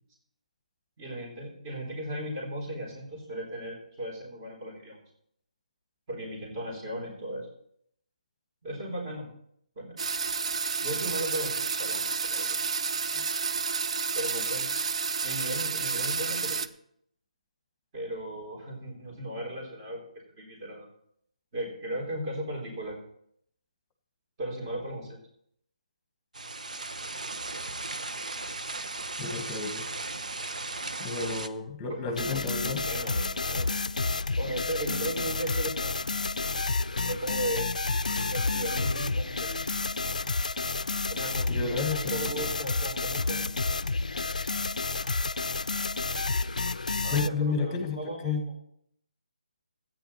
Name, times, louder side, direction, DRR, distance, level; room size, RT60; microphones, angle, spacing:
voice 1, 1.0-5.0 6.1-7.5 8.6-9.3 9.8-10.0 10.8-12.6 14.1-14.7 15.2-16.6 17.9-20.1 20.4-20.9 21.5-23.0 24.4-25.2 31.2-31.4 31.9-33.7 34.4-36.0 37.0-37.8 38.2-39.7 41.1-43.5 47.0-48.6, right 1 dB, 30° right, -2 dB, 3.8 m, -36 dB
sound 1, 10.0-16.7, right 5 dB, 55° right, 0.6 m, -30 dB
sound 2, 26.3-31.5, right 2 dB, 85° right, 0.9 m, -36 dB
voice 2, 29.2-29.9 31.0-32.8 41.5-42.2 46.7-48.4, left 4 dB, 15° left, 7 dB, 1.7 m, -32 dB
sound 3, 32.2-47.3, left 3 dB, 85° left, 0.4 m, -30 dB
14.0 x 9.1 x 4.3 m, 0.71 s
figure-of-eight pair, 155°, 4 cm